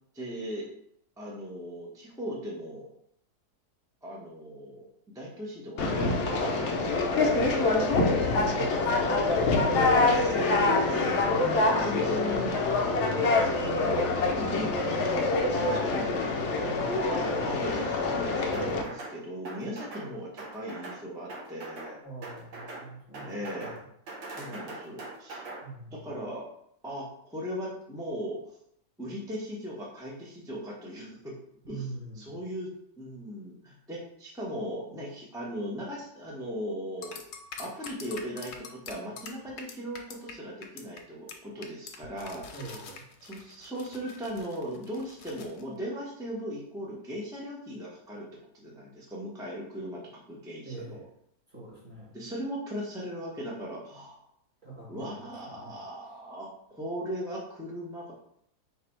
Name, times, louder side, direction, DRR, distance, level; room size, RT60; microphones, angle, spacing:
voice 1, 0.1-0.7 1.2-2.9 4.0-4.9 5.1-8.4 11.8-13.6 14.1-14.7 15.7-16.4 16.8-22.0 23.2-23.8 24.3-25.4 25.9-26.5 26.8-28.4 29.0-31.4 31.7-37.2 37.6-42.9 43.2-48.3 48.5-51.0 52.1-54.2 54.9-58.1, equal, 5° right, -4 dB, 0.5 m, -38 dB
Conversation, 5.8-18.8, left 3 dB, 60° left, 0.8 m, -25 dB
voice 2, 8.2-9.2 10.9-11.7 22.0-23.8 25.6-26.0 31.6-32.3 42.5-43.0 50.6-51.1 51.5-52.1 54.6-55.8, right 3 dB, 30° right, -6 dB, 1.6 m, -43 dB
sound 1, 18.5-19.2 19.5-20.1 20.4-21.0 21.3-21.9 22.2-22.9 23.1-23.8 24.1-25.6, right 2 dB, 55° right, 1.1 m, -41 dB
sound 2, 37.0-40.3 40.6-41.0 41.3-41.4 41.6-45.6, left 5 dB, 80° left, 1.2 m, -44 dB
3.9 x 2.7 x 4.4 m, 0.71 s
omnidirectional pair, 1.7 m